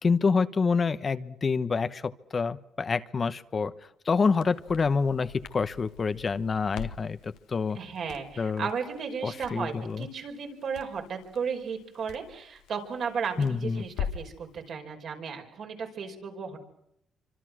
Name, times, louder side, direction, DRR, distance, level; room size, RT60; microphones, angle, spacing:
voice 1, 0.0-3.7 4.1-7.8 8.4-8.7 9.2-10.1 13.4-13.8, left 5 dB, 40° left, 12 dB, 1.1 m, -27 dB
Crackle, 4.2-14.4, left 8 dB, 90° left, 1.7 m, -43 dB
voice 2, 7.7-16.6, right 6 dB, 60° right, 3 dB, 5.4 m, -35 dB
26.5 x 25.5 x 6.4 m, 0.76 s
cardioid pair, 90°, 0 cm